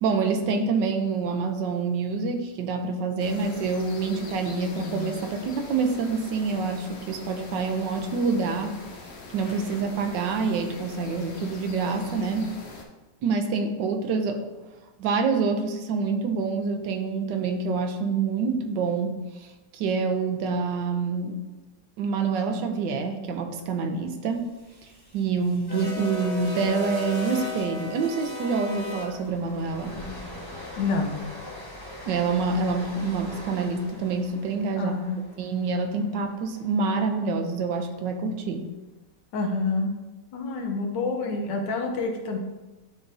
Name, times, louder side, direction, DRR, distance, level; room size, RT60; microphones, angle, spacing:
voice 1, 0.0-8.7 9.3-12.6 13.2-14.5 15.0-19.1 19.4-19.5 19.7-21.4 22.0-24.6 25.1-30.0 32.1-34.9 35.4-38.7, right 4 dB, 85° right, 6 dB, 1.3 m, -27 dB
sound 1, 3.2-12.8, left 4 dB, 55° left, 0.8 m, -42 dB
sound 2, 24.4-36.6, left 3 dB, 20° left, 0.7 m, -38 dB
voice 2, 30.8-31.2 34.8-35.2 39.3-39.9 40.3-42.4, left 3 dB, 85° left, 3 dB, 1.5 m, -27 dB
9.9 x 3.7 x 2.6 m, 1.1 s
omnidirectional pair, 1.9 m